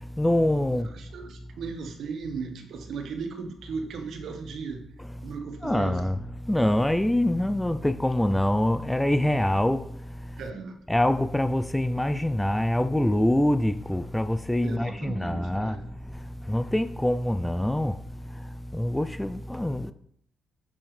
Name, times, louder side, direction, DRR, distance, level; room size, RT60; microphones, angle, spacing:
voice 1, 0.2-0.9 5.6-6.2 6.5-9.8 10.9-15.8 16.5-18.0 18.7-19.9, left 1 dB, 5° left, 0.4 m, -24 dB
voice 2, 0.7-4.8 5.2-6.0 10.4-10.8 14.6-15.9, right 5 dB, 70° right, 1.3 m, -36 dB
7.7 x 7.0 x 3.3 m
cardioid pair, 90°, 0 cm